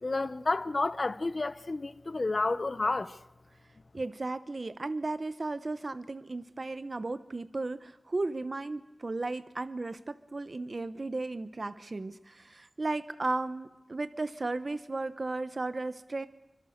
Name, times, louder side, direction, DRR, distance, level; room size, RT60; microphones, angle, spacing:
voice 1, 0.0-3.2, left 3 dB, 60° left, 0.9 m, -30 dB
voice 2, 3.9-16.3, right 2 dB, 60° right, 0.9 m, -35 dB
27.5 x 25.0 x 6.6 m
wide cardioid pair, 70°, 0 cm